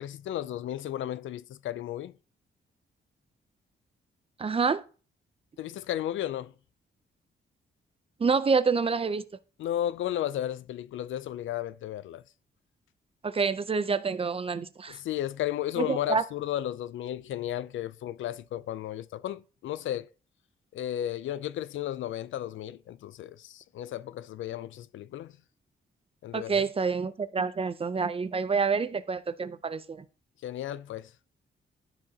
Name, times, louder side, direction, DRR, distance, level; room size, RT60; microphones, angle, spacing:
voice 1, 0.0-2.1 5.6-6.5 9.6-12.2 14.9-20.1 20.7-25.4 26.2-26.6 30.4-31.1, left 12 dB, 80° left, 0.4 m, -34 dB
voice 2, 4.4-4.8 8.2-9.2 13.2-15.0 15.8-16.2 26.3-30.0, right 5 dB, 30° right, 0.5 m, -27 dB
12.0 x 4.8 x 2.8 m
cardioid pair, 100°, 20 cm